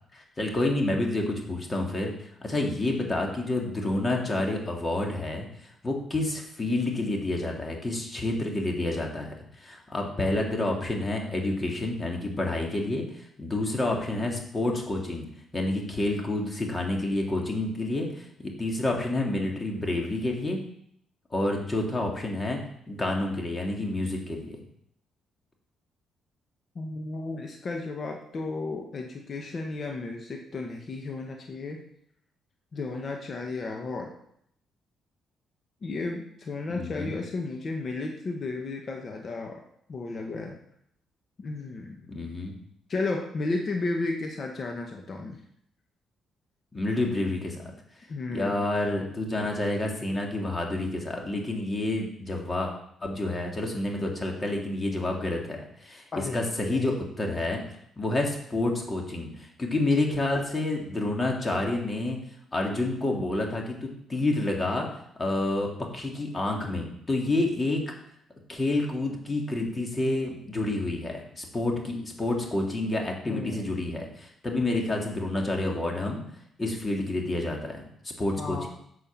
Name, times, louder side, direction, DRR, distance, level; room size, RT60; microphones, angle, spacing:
voice 1, 0.1-2.1 2.4-5.5 5.8-9.3 9.6-13.0 13.4-15.3 15.5-20.6 21.3-22.6 22.9-24.5 36.7-37.1 42.1-42.5 46.7-47.6 48.3-52.7 53.0-57.6 58.0-62.2 62.5-64.9 65.2-67.8 68.5-76.2 76.6-78.7, left 2 dB, 25° left, 1 dB, 3.0 m, -29 dB
voice 2, 26.7-31.8 32.7-34.1 35.8-39.6 39.9-40.6 41.4-42.1 42.9-45.4 48.1-48.5 56.1-57.0 73.2-73.7 78.4-78.7, left 3 dB, 45° left, 2 dB, 1.6 m, -33 dB
11.5 x 6.2 x 7.5 m, 0.72 s
cardioid pair, 90°, 0 cm